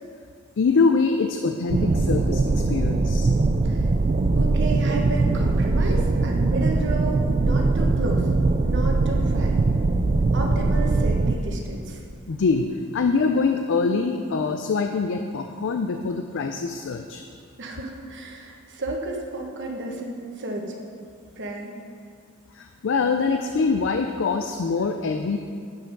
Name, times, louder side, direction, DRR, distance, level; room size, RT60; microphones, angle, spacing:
voice 1, 0.6-3.3 12.3-17.2 22.5-25.4, left 4 dB, 60° left, 6 dB, 0.4 m, -24 dB
sound 1, 1.7-11.3, right 3 dB, 30° right, 0.3 m, -21 dB
voice 2, 4.3-8.3 8.6-9.5 10.3-12.0 17.6-20.7 21.3-21.7, right 2 dB, 55° right, 1 dB, 1.1 m, -32 dB
8.8 x 5.7 x 5.3 m, 2.2 s
head